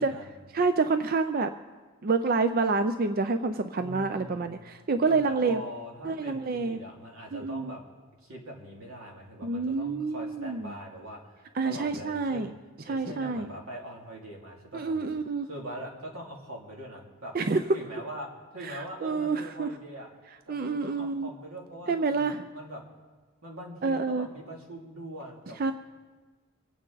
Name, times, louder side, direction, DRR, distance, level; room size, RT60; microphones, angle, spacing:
voice 1, 0.0-0.3 3.8-4.6 5.0-7.8 8.2-12.5 12.9-15.1 15.4-17.4 17.7-20.1 20.5-22.8 23.4-25.7, right 1 dB, 85° right, -1 dB, 2.8 m, -42 dB
voice 2, 0.5-1.5 2.0-5.6 6.1-6.8 7.3-7.7 9.4-10.7 11.5-12.5 12.9-13.5 14.7-15.5 17.3-17.6 18.6-19.7 20.5-21.3 21.9-22.4 23.8-24.3 25.6-25.7, right 4 dB, 45° right, 9 dB, 0.5 m, -28 dB
25.5 x 9.0 x 4.0 m, 1.3 s
head